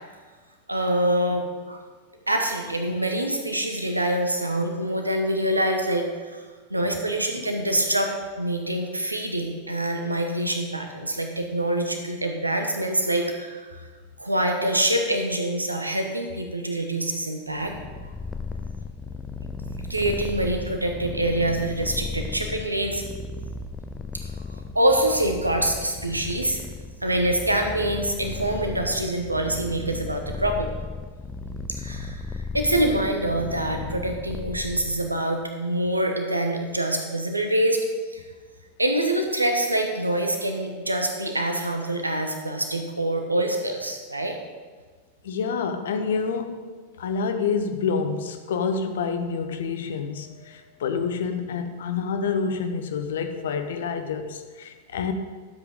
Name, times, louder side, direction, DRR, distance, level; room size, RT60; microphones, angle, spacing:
voice 1, 0.7-1.8 2.3-6.4 6.7-13.9 14.2-17.7 18.0-18.1 19.6-23.0 24.2-26.6 27.0-30.7 31.8-32.2 32.5-37.8 38.1-38.2 38.8-44.4, right 1 dB, 85° right, 4 dB, 1.2 m, -25 dB
Purr, 17.6-35.3, left 3 dB, 10° left, 0.6 m, -35 dB
voice 2, 45.2-46.6 47.0-55.1, left 5 dB, 60° left, 7 dB, 0.9 m, -28 dB
12.5 x 7.8 x 3.7 m, 1.5 s
figure-of-eight pair, 90°, 0 cm